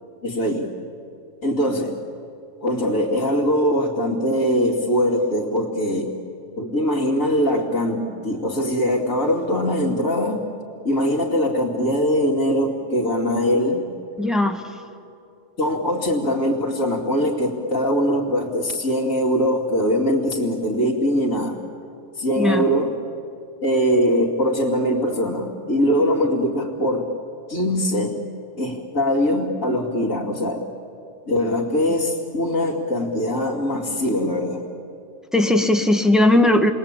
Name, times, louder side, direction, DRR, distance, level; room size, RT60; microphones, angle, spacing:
voice 1, 0.2-0.8 1.4-2.0 2.6-6.1 6.6-10.4 10.8-13.9 15.6-21.6 22.2-22.9 23.6-27.1 27.5-28.2 28.6-30.6 31.3-34.7, equal, 75° left, -6 dB, 2.9 m, -22 dB
voice 2, 14.2-14.6 22.4-22.6 35.3-36.7, left 1 dB, ahead, 5 dB, 1.4 m, -17 dB
29.0 x 21.5 x 8.9 m, 2.7 s
omnidirectional pair, 1.4 m